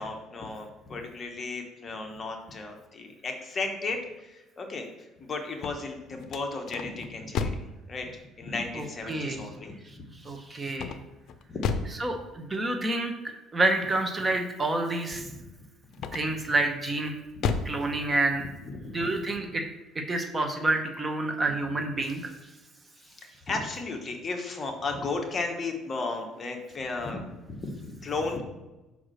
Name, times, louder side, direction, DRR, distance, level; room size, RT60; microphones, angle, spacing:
voice 1, 0.0-4.9 5.2-10.0 11.5-11.6 15.2-15.4 17.4-17.6 18.7-19.1 23.5-28.4, left 3 dB, 30° left, 3 dB, 1.1 m, -35 dB
sound 1, 5.5-7.8 10.7-12.0 15.9-16.5 17.0-17.8, left 5 dB, 55° left, 0.6 m, -32 dB
voice 2, 8.7-9.5 10.2-10.9 12.0-13.1 13.5-15.2 16.1-17.1 17.6-18.4 18.9-19.6 19.9-22.3, right 2 dB, 20° right, 4 dB, 0.9 m, -28 dB
5.3 x 4.8 x 6.3 m, 1.1 s
cardioid pair, 135°, 0 cm